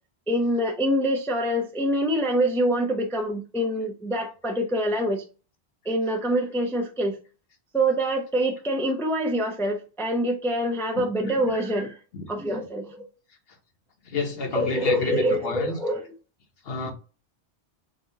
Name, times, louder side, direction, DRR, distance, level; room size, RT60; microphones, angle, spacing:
voice 1, 0.3-5.2 5.8-7.2 7.7-12.0 12.3-13.1 14.5-16.1, right 1 dB, 5° left, 0.4 m, -25 dB
voice 2, 14.1-15.8 16.7-16.9, left 3 dB, 60° left, 1.1 m, -28 dB
5.0 x 2.4 x 2.7 m
omnidirectional pair, 1.2 m